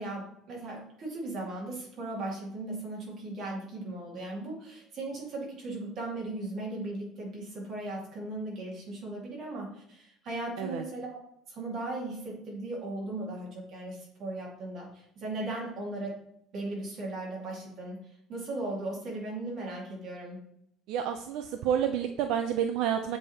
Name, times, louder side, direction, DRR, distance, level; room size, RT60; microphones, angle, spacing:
voice 1, 0.0-11.2 11.5-16.2 16.5-18.0 18.3-20.4, right 2 dB, 40° right, -2 dB, 2.2 m, -37 dB
voice 2, 20.9-23.2, right 9 dB, 70° right, 7 dB, 0.4 m, -29 dB
7.3 x 3.4 x 4.3 m, 0.73 s
cardioid pair, 170°, 0 cm